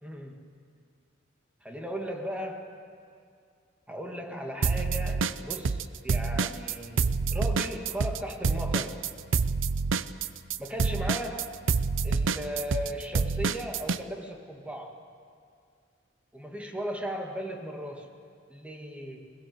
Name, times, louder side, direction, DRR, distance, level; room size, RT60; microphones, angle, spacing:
voice 1, 0.0-0.5 1.6-2.7 3.9-9.1 10.6-11.5 12.0-15.0 16.3-18.1 18.5-19.3, equal, 5° right, 1 dB, 2.2 m, -37 dB
sound 1, 4.6-5.8 6.1-14.0, right 4 dB, 90° right, 0.6 m, -27 dB
21.5 x 21.0 x 8.0 m, 2.2 s
head